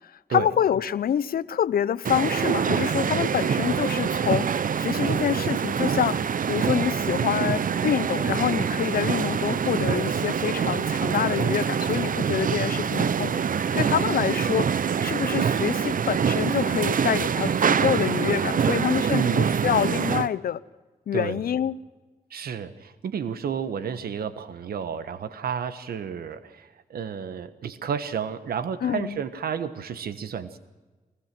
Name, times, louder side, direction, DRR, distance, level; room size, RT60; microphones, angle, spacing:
voice 1, 0.3-13.3 13.7-20.6 21.1-21.8 28.8-29.2, left 9 dB, 70° left, 0.7 m, -26 dB
sound 1, 2.0-20.3, right 7 dB, 60° right, 0.8 m, -25 dB
voice 2, 19.1-19.5 21.1-21.4 22.3-30.6, right 7 dB, 75° right, 1.3 m, -31 dB
23.0 x 20.5 x 6.0 m
supercardioid pair, 40°, 16 cm